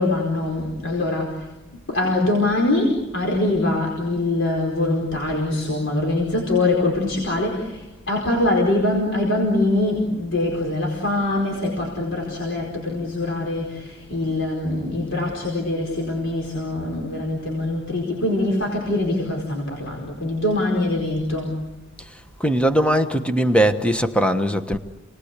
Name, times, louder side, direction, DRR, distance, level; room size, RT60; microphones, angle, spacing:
voice 1, 0.0-1.3 1.9-7.8 8.1-21.5, left 2 dB, 65° left, -1 dB, 4.7 m, -23 dB
voice 2, 22.4-24.8, right 1 dB, 5° left, 7 dB, 1.2 m, -20 dB
29.0 x 20.0 x 8.3 m, 1.1 s
head